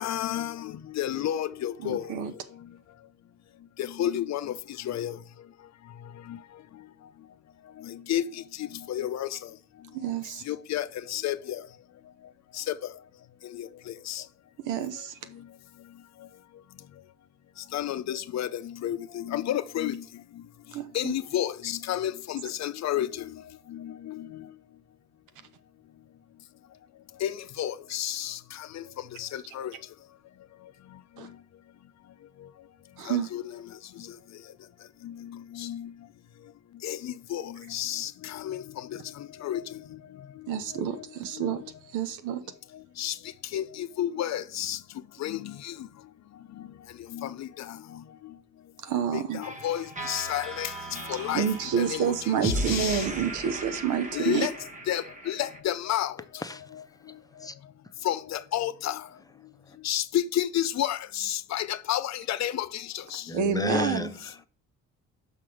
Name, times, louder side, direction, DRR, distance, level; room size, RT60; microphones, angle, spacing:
voice 1, 0.0-2.1 3.8-4.6 4.8-5.2 6.3-6.4 7.9-8.2 8.6-9.4 10.5-11.6 12.6-12.7 13.5-13.7 14.1-14.2 17.7-20.0 20.9-23.2 23.7-24.3 27.2-28.4 28.7-28.8 29.2-29.7 33.1-33.4 35.0-35.1 35.5-35.9 36.8-38.6 39.4-39.6 41.4-41.5 43.0-43.1 43.5-44.8 45.2-45.7 47.1-47.8 49.1-50.7 51.1-51.5 51.8-52.2 52.4-53.0 54.1-54.5 54.9-56.1 58.0-59.0 59.8-63.2, left 12 dB, 60° left, 0.6 m, -31 dB
voice 2, 1.8-2.3 9.9-10.4 14.7-15.2 20.7-21.1 31.2-31.3 33.0-33.3 40.5-41.6 41.9-42.4 48.8-49.4 51.3-54.5 63.3-64.1, right 8 dB, 90° right, 1.0 m, -28 dB
sound 1, 49.4-55.6, equal, 25° right, 1.2 m, -36 dB
voice 3, 56.4-57.6 59.6-59.8 63.3-64.4, left 3 dB, 10° left, 0.7 m, -34 dB
6.0 x 5.7 x 4.9 m
cardioid pair, 90°, 30 cm